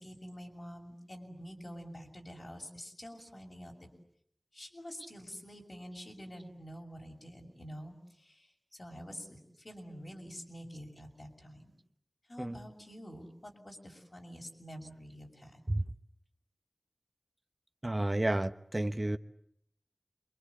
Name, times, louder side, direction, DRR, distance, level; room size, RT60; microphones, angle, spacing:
voice 1, 0.0-3.7 4.5-11.6 12.3-15.6, equal, 55° left, 6.9 m, -47 dB
voice 2, 17.8-19.2, right 1 dB, 35° right, 1.1 m, -31 dB
28.0 x 24.0 x 8.5 m
wide cardioid pair, 50°, 0 cm